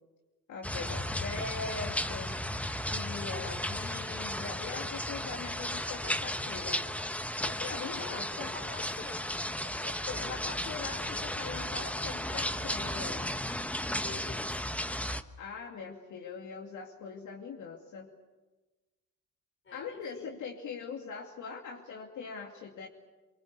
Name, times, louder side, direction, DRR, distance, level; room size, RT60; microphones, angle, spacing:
voice 1, 0.5-2.4 2.9-6.8 7.4-8.5 9.6-13.3 15.4-18.1 19.7-22.9, left 5 dB, 75° left, 0 dB, 2.6 m, -41 dB
sound 1, 0.6-15.2, left 1 dB, 5° left, 1.0 m, -35 dB
voice 2, 8.5-9.3 14.0-14.7 19.6-20.4, left 4 dB, 40° left, 7 dB, 4.9 m, -47 dB
24.0 x 23.5 x 8.3 m, 1.2 s
cardioid pair, 90°, 30 cm